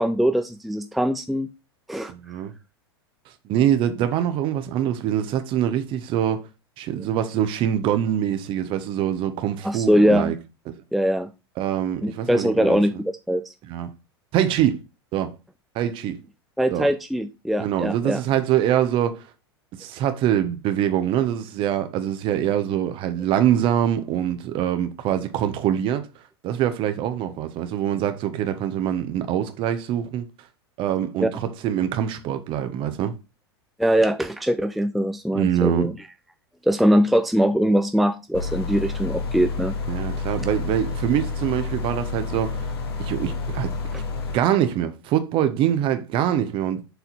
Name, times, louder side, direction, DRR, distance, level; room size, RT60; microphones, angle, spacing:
voice 1, 0.0-1.5 1.9-2.1 9.6-10.3 10.9-11.3 12.0-13.4 16.6-18.2 31.2-31.3 33.8-35.9 36.7-39.7, equal, ahead, 0.5 m, -21 dB
voice 2, 2.1-2.5 3.4-6.5 6.8-10.3 11.6-13.0 13.7-13.9 14.3-14.8 15.1-15.3 15.7-16.2 16.7-16.9 17.6-19.3 19.8-26.1 26.4-30.3 30.8-33.2 35.3-35.9 39.9-42.7 43.0-43.7 44.3-46.9, right 10 dB, 40° right, 1.1 m, -24 dB
sound 1, 38.3-44.4, left 4 dB, 65° left, 1.7 m, -29 dB
6.9 x 4.2 x 4.1 m
figure-of-eight pair, 90°, 14 cm